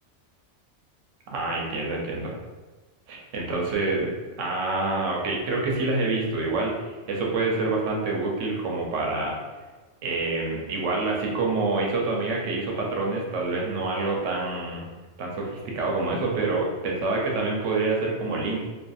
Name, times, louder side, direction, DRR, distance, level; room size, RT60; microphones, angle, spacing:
voice 1, 1.3-2.3 3.1-4.1 4.4-9.4 10.0-14.9 15.2-18.6, right 3 dB, 80° right, -1 dB, 0.9 m, -27 dB
2.6 x 2.4 x 2.3 m, 1.3 s
omnidirectional pair, 1.3 m